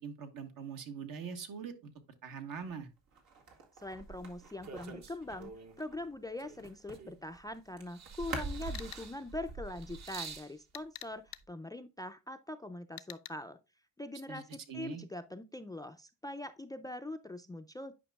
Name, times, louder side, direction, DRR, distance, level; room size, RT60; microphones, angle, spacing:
voice 1, 0.0-1.9 2.2-2.9 14.3-14.4 14.7-15.0, right 6 dB, 70° right, 1.3 m, -42 dB
sound 1, 2.5-7.1 7.3-10.0, right 3 dB, 85° right, 1.9 m, -48 dB
voice 2, 3.8-13.6 14.0-17.9, left 1 dB, 10° left, 0.3 m, -43 dB
sound 2, 4.0-5.8 6.4-7.5 7.9-10.5 11.4-11.5, right 4 dB, 50° right, 0.9 m, -45 dB
sound 3, 8.7-9.0 10.7-11.4 13.0-13.3, left 15 dB, 80° left, 0.6 m, -46 dB
9.9 x 5.2 x 2.3 m
cardioid pair, 110°, 35 cm